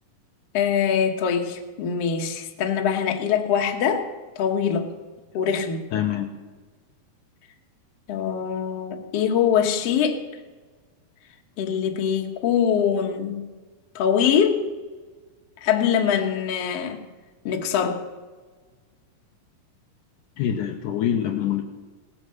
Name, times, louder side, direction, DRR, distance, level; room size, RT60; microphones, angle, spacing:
voice 1, 0.5-4.1 4.4-4.9 5.3-5.8 8.1-10.2 11.6-13.5 14.0-14.7 15.6-17.0 17.5-18.0, left 7 dB, 55° left, 3 dB, 2.1 m, -23 dB
voice 2, 5.9-6.3 20.4-21.6, left 10 dB, 75° left, 3 dB, 2.2 m, -25 dB
18.0 x 9.6 x 6.5 m, 1.4 s
omnidirectional pair, 4.0 m